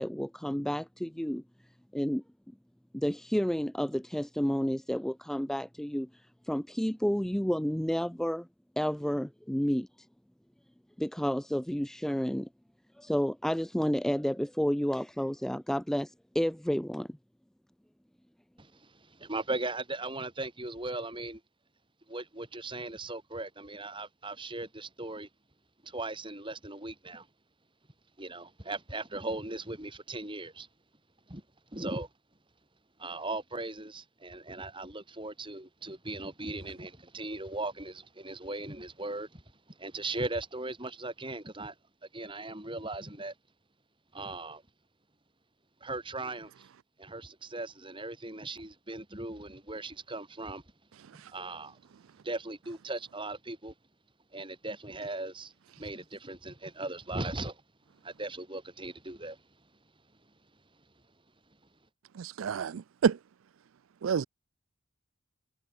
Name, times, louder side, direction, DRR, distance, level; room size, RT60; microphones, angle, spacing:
voice 1, 0.0-1.4 1.9-2.2 2.9-8.5 8.8-10.1 11.0-12.5 13.0-17.1, equal, ahead, 0.4 m, -31 dB
voice 2, 18.6-21.4 22.1-25.3 25.8-27.3 28.2-30.7 31.3-31.4 31.7-32.1 33.0-39.4 39.7-41.7 42.1-43.3 44.1-44.6 45.8-46.7 47.0-50.6 51.1-51.8 52.2-53.7 54.3-57.6 58.0-59.4, right 2 dB, 25° right, 5.7 m, -38 dB
voice 3, 62.2-63.2 64.0-64.2, right 6 dB, 70° right, 0.4 m, -28 dB
head